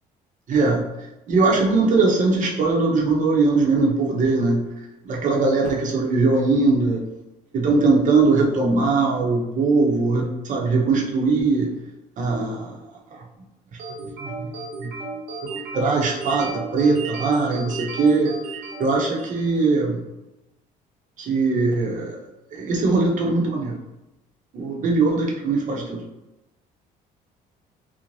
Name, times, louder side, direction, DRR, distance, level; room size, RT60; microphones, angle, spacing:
voice 1, 0.5-0.8 1.3-4.6 5.1-7.0 7.5-11.7 12.2-12.8 13.1-13.2 14.2-14.5 14.8-14.9 15.7-18.3 18.8-20.0 21.2-22.1 22.5-23.8 24.5-26.0, right 3 dB, 50° right, -1 dB, 0.7 m, -20 dB
sound 1, 13.8-19.5, right 3 dB, 80° right, 0.8 m, -34 dB
2.6 x 2.1 x 3.0 m, 0.97 s
cardioid pair, 110°, 17 cm